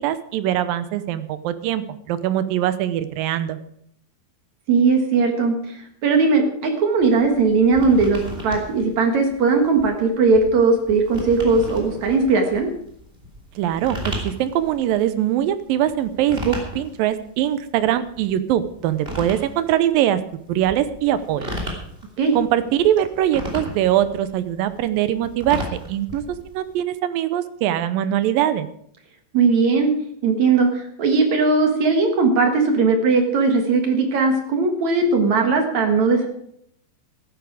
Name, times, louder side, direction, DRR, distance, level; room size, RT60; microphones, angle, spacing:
voice 1, 0.0-3.6 13.6-20.2 20.5-21.5 22.3-25.6 25.9-28.7, right 11 dB, 75° right, 13 dB, 2.3 m, -22 dB
voice 2, 4.7-12.7 22.2-22.4 29.3-29.9 30.2-36.3, right 4 dB, 55° right, 4 dB, 2.6 m, -18 dB
sound 1, 7.0-26.8, equal, 15° right, 3.0 m, -35 dB
15.0 x 11.5 x 4.8 m, 0.69 s
omnidirectional pair, 4.3 m